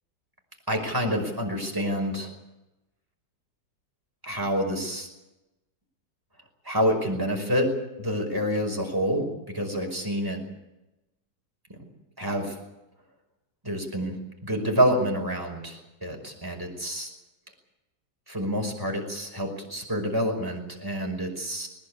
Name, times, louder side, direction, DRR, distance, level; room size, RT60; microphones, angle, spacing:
voice 1, 0.7-2.3 4.2-5.1 6.6-7.7 8.0-10.4 11.7-11.8 12.2-12.6 13.6-14.1 14.4-17.1 18.3-21.7, equal, 10° right, 1 dB, 5.3 m, -27 dB
20.5 x 20.5 x 8.6 m, 0.97 s
omnidirectional pair, 1.9 m